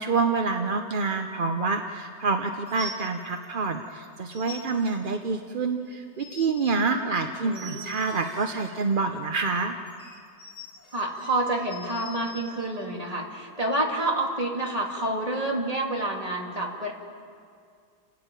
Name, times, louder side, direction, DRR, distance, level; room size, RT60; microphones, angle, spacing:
voice 1, 0.0-9.8, right 4 dB, 45° right, 5 dB, 0.7 m, -27 dB
sound 1, 2.7-3.7 4.0-5.2 5.9-6.7 7.5-9.0 9.9-12.5, equal, 25° left, 3.3 m, -44 dB
voice 2, 7.4-7.9 10.9-16.9, right 1 dB, 20° right, 0 dB, 2.5 m, -28 dB
29.5 x 13.0 x 9.1 m, 2.3 s
omnidirectional pair, 1.9 m